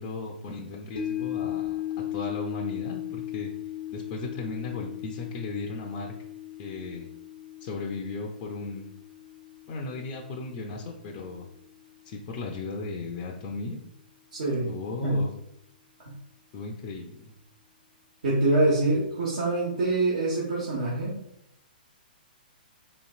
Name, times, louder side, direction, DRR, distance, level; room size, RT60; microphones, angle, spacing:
voice 1, 0.0-3.5 3.9-6.1 6.6-7.1 7.6-8.9 9.7-11.5 12.1-13.8 14.7-15.3 16.5-17.3, left 3 dB, 35° left, 0 dB, 0.5 m, -36 dB
sound 1, 1.0-11.3 11.7-11.8, left 12 dB, 75° left, 0.7 m, -37 dB
voice 2, 14.4-14.7 15.0-15.2 18.2-21.2, right 2 dB, 55° right, -7 dB, 1.3 m, -25 dB
4.3 x 2.8 x 2.4 m, 0.79 s
figure-of-eight pair, 125°, 5 cm